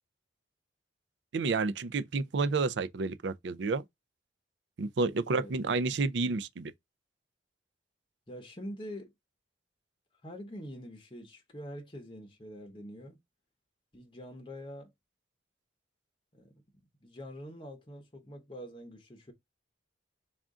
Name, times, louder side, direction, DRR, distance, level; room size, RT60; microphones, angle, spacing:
voice 1, 1.3-3.8 4.8-6.7, right 4 dB, 65° right, 0.4 m, -30 dB
voice 2, 8.3-9.1 10.2-13.2 13.9-14.9 16.3-16.5 17.0-19.3, equal, 25° left, 0.8 m, -45 dB
3.5 x 2.5 x 3.6 m
head